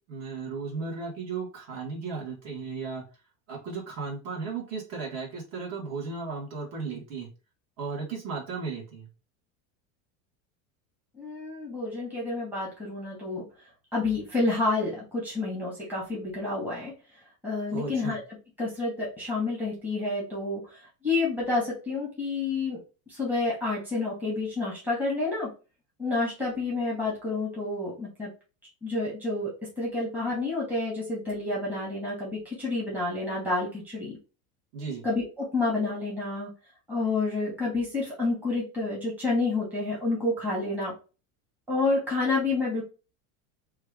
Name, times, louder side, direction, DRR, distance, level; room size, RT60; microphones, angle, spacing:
voice 1, 0.1-3.0 3.5-7.3 7.8-9.1 17.7-18.2 34.7-35.0, right 4 dB, 40° right, -2 dB, 1.5 m, -35 dB
voice 2, 11.2-13.4 13.9-16.9 17.4-18.2 18.6-20.6 21.0-22.8 23.1-25.5 26.0-28.3 28.8-34.2 35.0-36.5 36.9-40.9 41.7-42.9, left 3 dB, 5° right, -5 dB, 1.1 m, -29 dB
3.2 x 2.4 x 3.4 m, 0.32 s
supercardioid pair, 145°, 40 cm